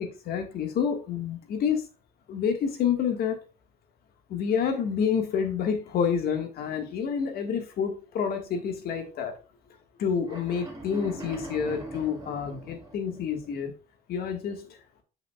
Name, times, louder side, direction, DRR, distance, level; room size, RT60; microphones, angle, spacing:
voice 1, 0.0-1.9 2.3-3.4 4.3-9.4 10.0-13.7 14.1-14.8, left 7 dB, 65° left, 5 dB, 1.7 m, -28 dB
sound 1, 10.2-13.5, right 1 dB, 25° right, 3.0 m, -41 dB
8.1 x 5.9 x 2.4 m, 0.34 s
cardioid pair, 110°, 17 cm